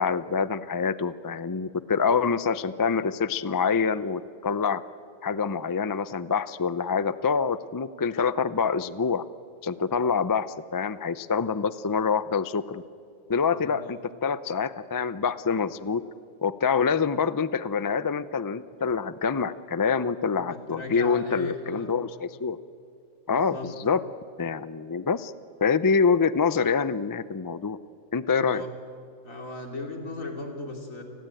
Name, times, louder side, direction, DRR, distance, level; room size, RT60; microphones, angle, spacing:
voice 1, 0.0-4.8 5.2-9.3 9.6-12.8 13.3-16.0 16.4-22.6 23.3-24.0 24.4-25.3 25.6-27.8 28.1-28.6, left 5 dB, 35° left, 15 dB, 0.3 m, -26 dB
voice 2, 13.5-14.0 20.3-22.0 23.3-23.7 28.4-28.7 29.2-31.0, left 2 dB, 80° left, 3 dB, 3.6 m, -37 dB
29.5 x 19.5 x 9.1 m, 2.3 s
omnidirectional pair, 1.4 m